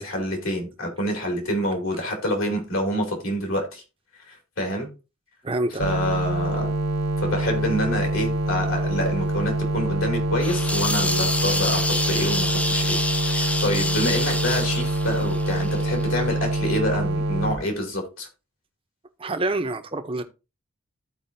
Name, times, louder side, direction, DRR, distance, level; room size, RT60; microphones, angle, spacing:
voice 1, 0.0-3.8 4.3-4.9 5.8-6.7 7.2-13.0 13.2-18.3, equal, 75° left, 2.9 m, -27 dB
voice 2, 5.4-5.8 19.2-20.2, right 2 dB, 25° right, 0.7 m, -26 dB
sound 1, 5.8-17.6, right 1 dB, 70° right, 0.6 m, -25 dB
sound 2, 10.4-16.2, left 2 dB, 5° left, 0.3 m, -27 dB
14.5 x 4.8 x 2.7 m
head